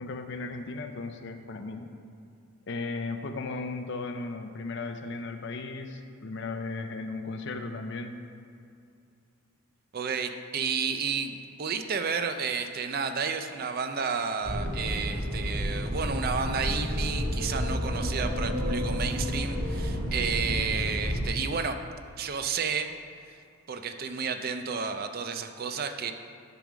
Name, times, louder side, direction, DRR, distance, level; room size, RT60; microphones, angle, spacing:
voice 1, 0.0-1.9 2.7-8.2, left 3 dB, 55° left, 7 dB, 0.5 m, -36 dB
voice 2, 9.9-21.8 22.2-22.9 23.7-26.1, right 5 dB, 45° right, 7 dB, 0.4 m, -31 dB
sound 1, 14.4-21.3, equal, 75° right, 1.9 m, -30 dB
10.5 x 3.7 x 6.0 m, 2.5 s
head